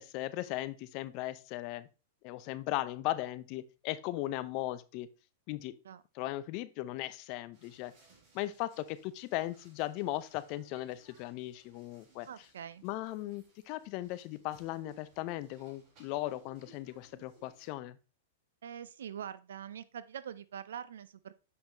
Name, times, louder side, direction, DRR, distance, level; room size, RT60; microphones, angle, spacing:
voice 1, 0.0-1.9 2.2-5.1 5.5-5.8 6.1-7.9 8.3-12.3 12.8-18.0, left 16 dB, 50° left, 0.6 m, -37 dB
sound 1, 7.5-17.7, right 3 dB, 45° right, 4.1 m, -63 dB
voice 2, 12.3-12.8 18.6-21.3, right 9 dB, 75° right, 0.5 m, -44 dB
7.7 x 5.6 x 3.0 m
hypercardioid pair, 110°, 0 cm